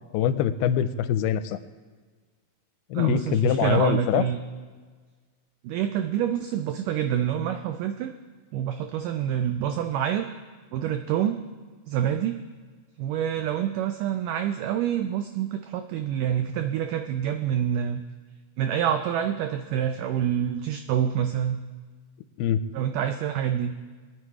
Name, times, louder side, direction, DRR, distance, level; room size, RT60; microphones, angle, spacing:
voice 1, 0.1-1.6 2.9-4.2 22.4-22.6, left 10 dB, 90° left, 12 dB, 2.6 m, -23 dB
voice 2, 2.9-4.4 5.6-8.1 8.5-10.3 10.7-11.4 11.9-12.4 13.0-18.0 18.6-21.6 22.7-23.7, right 9 dB, 90° right, 7 dB, 1.8 m, -27 dB
20.5 x 9.4 x 4.8 m, 1.5 s
omnidirectional pair, 4.5 m